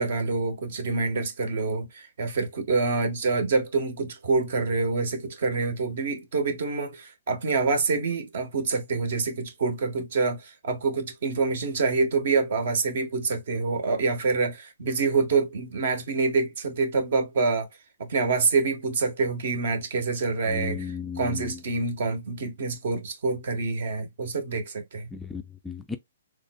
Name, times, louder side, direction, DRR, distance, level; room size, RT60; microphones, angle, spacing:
voice 1, 0.0-17.7 18.0-20.9 21.2-25.1, right 4 dB, 55° right, 1.2 m, -26 dB
voice 2, 20.5-21.6 25.1-26.0, left 5 dB, 5° left, 0.4 m, -35 dB
4.0 x 3.1 x 2.2 m
figure-of-eight pair, 125°, 0 cm